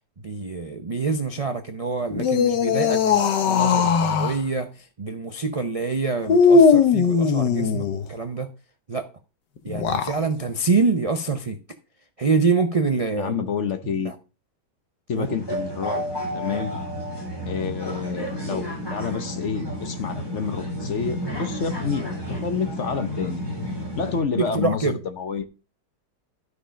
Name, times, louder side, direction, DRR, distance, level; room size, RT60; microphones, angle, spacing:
voice 1, 0.2-8.5 8.9-9.1 9.6-11.6 12.2-13.4 13.8-14.1 15.1-15.3 24.4-25.0, right 4 dB, 55° right, 0.4 m, -26 dB
sound 1, 2.1-4.4 6.3-8.1 9.7-10.2, left 5 dB, 85° left, 1.6 m, -19 dB
voice 2, 13.2-14.1 15.1-16.0 16.3-16.7 17.5-22.0 22.4-23.5 24.0-25.5, left 6 dB, 50° left, 1.1 m, -28 dB
sound 2, 15.2-24.2, equal, 15° left, 3.9 m, -31 dB
12.5 x 4.9 x 5.1 m
omnidirectional pair, 1.8 m